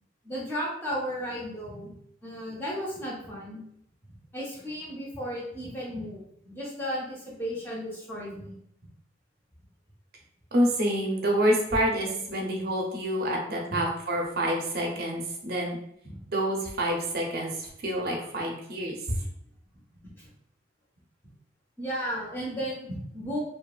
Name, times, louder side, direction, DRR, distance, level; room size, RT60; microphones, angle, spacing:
voice 1, 0.2-1.9 2.2-3.6 4.1-8.6 13.7-13.8 16.0-16.2 20.2-20.3 21.8-23.4, equal, 10° left, -5 dB, 0.5 m, -34 dB
voice 2, 10.5-15.8 16.3-17.5 17.8-19.2, equal, 50° right, 0 dB, 0.5 m, -27 dB
2.8 x 2.2 x 2.3 m, 0.72 s
head